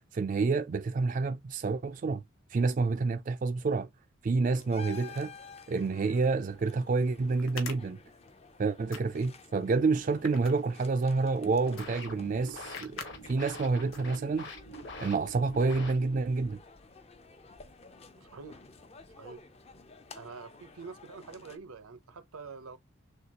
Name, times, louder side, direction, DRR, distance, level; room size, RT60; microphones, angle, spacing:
voice 1, 0.0-2.2 2.5-3.9 4.2-5.3 5.7-8.0 8.6-13.0 13.3-14.5 15.0-16.6, right 4 dB, 35° right, 0.3 m, -28 dB
sound 1, 4.5-21.6, left 4 dB, 30° left, 0.5 m, -52 dB
sound 2, 6.3-6.4 7.4-8.6 8.9-9.4 10.0-11.2 11.8-11.9 12.2-12.3 12.7-13.1 13.5-13.6 13.9-14.4, left 6 dB, 75° left, 1.1 m, -43 dB
sound 3, 11.4-16.4, left 1 dB, 55° left, 1.3 m, -45 dB
voice 2, 18.1-18.6 19.2-19.4 20.1-22.8, right 4 dB, 85° right, 0.7 m, -46 dB
6.5 x 2.3 x 2.8 m
head